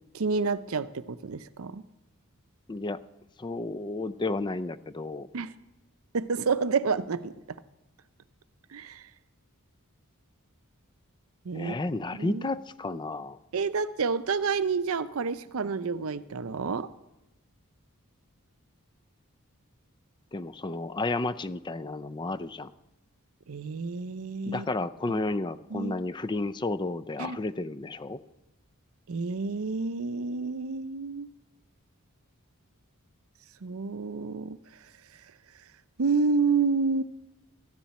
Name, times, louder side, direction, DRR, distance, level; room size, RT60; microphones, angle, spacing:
voice 1, 0.1-1.8 5.3-5.5 6.1-7.3 8.7-9.0 11.5-11.8 12.2-12.5 13.5-16.9 23.5-24.7 25.1-25.2 25.7-25.9 27.2-27.4 29.1-31.3 33.6-34.6 36.0-37.0, right 4 dB, 65° right, 14 dB, 0.6 m, -29 dB
voice 2, 2.7-3.0 3.4-5.3 11.5-13.4 20.3-22.7 24.5-28.2, left 2 dB, 20° left, 14 dB, 0.4 m, -32 dB
13.5 x 7.2 x 9.3 m, 0.94 s
head